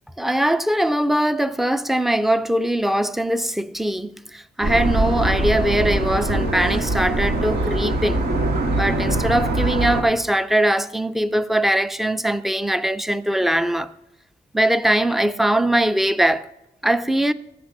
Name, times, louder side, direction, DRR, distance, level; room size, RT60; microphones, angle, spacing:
voice 1, 0.2-8.2 8.7-13.9 14.5-16.5 16.8-17.3, right 1 dB, ahead, 0.4 m, -21 dB
sound 1, 4.6-10.0, right 2 dB, 90° right, 1.6 m, -22 dB
14.5 x 5.8 x 6.0 m
wide cardioid pair, 110°, 17 cm